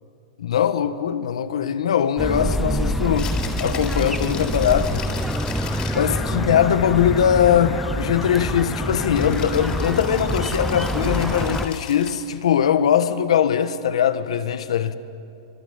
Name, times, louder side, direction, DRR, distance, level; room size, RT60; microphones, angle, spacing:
voice 1, 0.4-3.3 3.6-5.0 5.9-15.0, left 9 dB, 90° left, 1.4 m, -21 dB
sound 1, 2.2-11.7, equal, ahead, 0.8 m, -26 dB
Rattle (instrument), 3.0-6.2 9.1-12.4, left 8 dB, 25° left, 3.6 m, -38 dB
Alarm, 4.7-12.6, left 15 dB, 45° left, 0.8 m, -39 dB
26.0 x 24.0 x 7.2 m
supercardioid pair, 150°, 3 cm